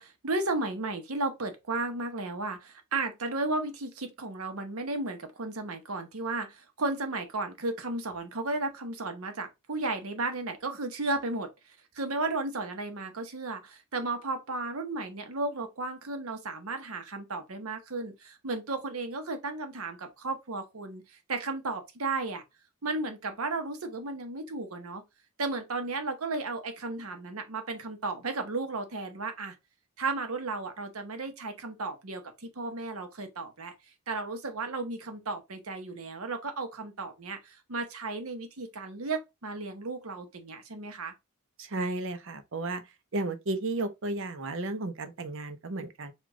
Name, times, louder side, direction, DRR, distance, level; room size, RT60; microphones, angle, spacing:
voice 1, 0.0-22.4 22.8-25.0 25.4-29.5 30.0-33.7 34.1-41.1, right 3 dB, 85° right, 1.0 m, -34 dB
voice 2, 41.6-42.8 43.1-46.1, right 2 dB, 65° right, 0.7 m, -33 dB
5.1 x 2.4 x 3.6 m
head